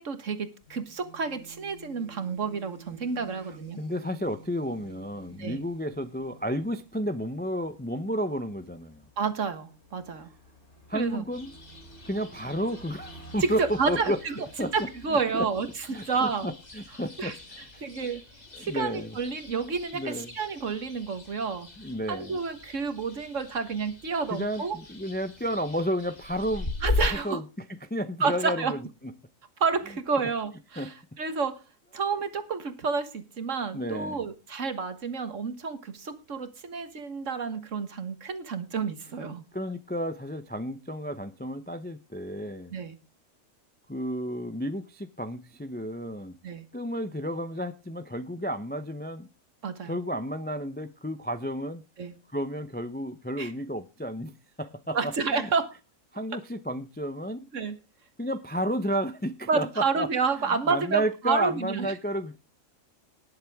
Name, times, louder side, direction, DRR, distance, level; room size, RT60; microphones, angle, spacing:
voice 1, 0.0-3.8 5.4-5.6 9.2-10.3 10.9-11.3 13.4-14.3 14.6-16.5 17.2-17.3 17.8-18.2 18.6-21.7 22.1-24.8 26.8-27.4 28.2-28.7 29.6-31.6 31.9-39.4 42.7-43.0 46.4-46.7 49.6-50.0 52.0-52.1 53.4-53.5 54.9-55.8 57.5-57.8 59.5-61.9, right 5 dB, 60° right, 1.8 m, -30 dB
sound 1, 0.6-7.3, right 4 dB, 40° right, 2.4 m, -51 dB
Bus, 1.4-18.3, right 1 dB, 85° left, 3.8 m, -55 dB
voice 2, 3.8-9.1 10.9-11.5 12.0-14.2 14.6-14.7 15.1-15.5 15.9-17.8 18.5-19.2 19.9-20.3 21.8-22.4 24.3-26.7 27.0-27.4 27.8-28.8 30.8-30.9 33.7-34.2 39.5-42.7 43.9-46.4 46.7-49.3 49.8-51.8 52.3-55.0 55.3-55.5 56.1-57.5 58.2-60.1 60.7-62.4, equal, 10° left, 0.5 m, -32 dB
sound 2, 11.3-27.1, left 3 dB, 30° left, 1.9 m, -39 dB
19.5 x 7.4 x 3.6 m
omnidirectional pair, 1.5 m